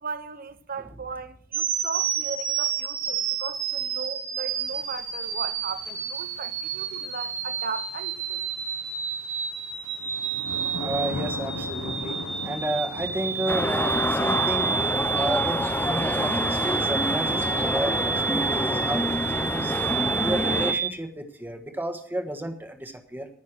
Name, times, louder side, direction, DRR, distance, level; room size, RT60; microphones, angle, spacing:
voice 1, 0.0-8.4, right 5 dB, 40° right, 0.8 m, -37 dB
sound 1, 1.5-20.9, right 7 dB, 70° right, 2.8 m, -29 dB
sound 2, 4.5-20.6, left 2 dB, 90° left, 0.9 m, -41 dB
voice 2, 10.8-14.8 15.1-15.6 15.9-19.7 20.2-23.3, right 1 dB, 10° right, 1.4 m, -32 dB
sound 3, 13.5-20.7, left 1 dB, 10° left, 0.6 m, -27 dB
18.5 x 6.4 x 6.2 m
head